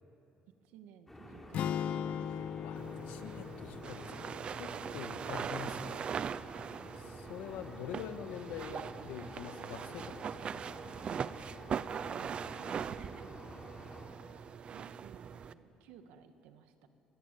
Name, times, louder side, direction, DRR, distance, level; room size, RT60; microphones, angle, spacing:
voice 1, 0.6-2.6 11.9-13.7 14.7-16.9, right 8 dB, 90° right, 7 dB, 2.0 m, -57 dB
sound 1, 1.1-14.1, left 1 dB, 10° left, 4.8 m, -51 dB
sound 2, 1.5-5.7, left 9 dB, 65° left, 0.7 m, -39 dB
voice 2, 2.6-6.0 7.0-10.6, left 9 dB, 85° left, 8 dB, 1.7 m, -45 dB
sound 3, 2.8-15.5, right 7 dB, 45° right, 0.8 m, -41 dB
29.5 x 21.5 x 8.6 m, 3.0 s
cardioid pair, 105°, 2 cm